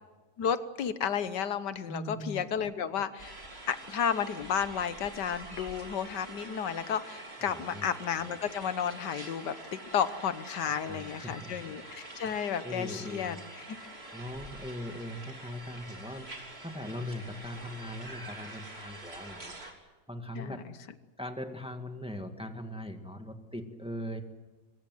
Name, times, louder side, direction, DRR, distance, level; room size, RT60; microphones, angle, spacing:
voice 1, 0.4-3.4 3.7-13.6 20.3-20.6, left 8 dB, 85° left, 13 dB, 1.7 m, -32 dB
voice 2, 1.9-2.5 7.4-7.9 10.6-11.9 12.6-13.4 14.1-19.5 20.1-20.7 21.2-24.2, left 1 dB, 5° right, 5 dB, 1.8 m, -40 dB
sound 1, 3.2-19.7, right 2 dB, 35° right, 3.5 m, -46 dB
24.0 x 22.5 x 7.9 m, 1.2 s
omnidirectional pair, 1.8 m